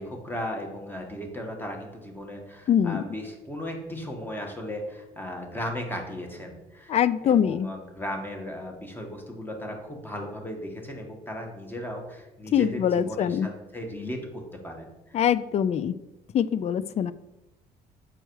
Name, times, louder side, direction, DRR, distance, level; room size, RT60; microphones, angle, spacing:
voice 1, 0.0-7.0 7.2-15.2, left 1 dB, 10° left, 2 dB, 1.7 m, -36 dB
voice 2, 2.7-3.0 6.9-7.7 12.5-13.5 15.1-15.9 16.3-17.1, left 9 dB, 40° left, 16 dB, 0.4 m, -23 dB
7.7 x 4.5 x 4.7 m, 0.96 s
cardioid pair, 110°, 17 cm